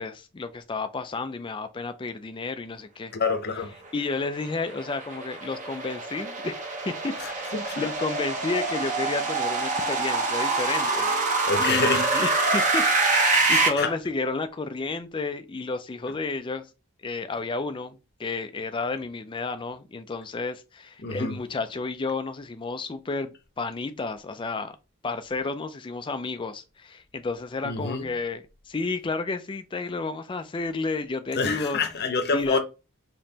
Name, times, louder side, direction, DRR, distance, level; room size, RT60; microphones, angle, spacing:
voice 1, 0.0-3.1 3.9-6.6 6.9-11.1 11.6-12.9 13.1-16.7 17.0-24.8 25.0-31.8 32.3-32.6, left 3 dB, 20° left, 0.4 m, -31 dB
voice 2, 3.1-3.7 7.2-7.9 11.5-12.0 13.3-13.9 21.0-21.4 27.6-28.1 31.4-32.6, left 4 dB, 45° left, 0.8 m, -27 dB
sound 1, 4.1-13.7, right 3 dB, 35° right, 1.0 m, -25 dB
5.2 x 3.0 x 2.9 m
head